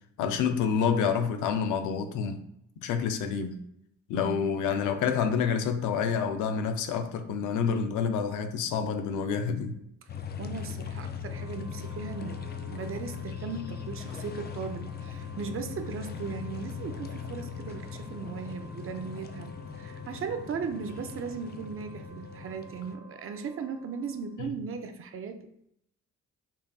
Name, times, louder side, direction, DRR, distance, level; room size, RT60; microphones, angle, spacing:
voice 1, 0.2-2.4 2.8-3.6 4.1-9.8 24.4-24.5, left 6 dB, 85° left, 7 dB, 0.5 m, -28 dB
sound 1, 10.1-23.0, left 7 dB, 35° left, 0.4 m, -39 dB
voice 2, 10.4-25.5, right 5 dB, 45° right, 7 dB, 0.5 m, -37 dB
Wind instrument woodwind instrument, 11.2-24.6, equal, 10° right, 0.7 m, -52 dB
5.6 x 2.5 x 2.3 m, 0.75 s
cardioid pair, 90°, 30 cm